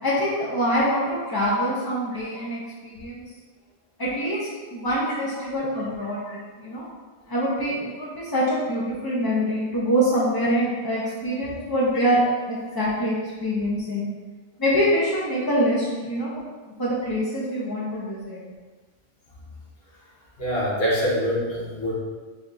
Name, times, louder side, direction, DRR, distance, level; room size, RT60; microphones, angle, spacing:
voice 1, 0.0-3.3 4.0-6.9 7.3-14.1 14.6-16.3 16.6-18.4, equal, 35° left, -7 dB, 0.3 m, -25 dB
voice 2, 20.4-21.9, equal, 55° left, -6 dB, 1.3 m, -25 dB
4.2 x 2.3 x 3.7 m, 1.4 s
omnidirectional pair, 1.3 m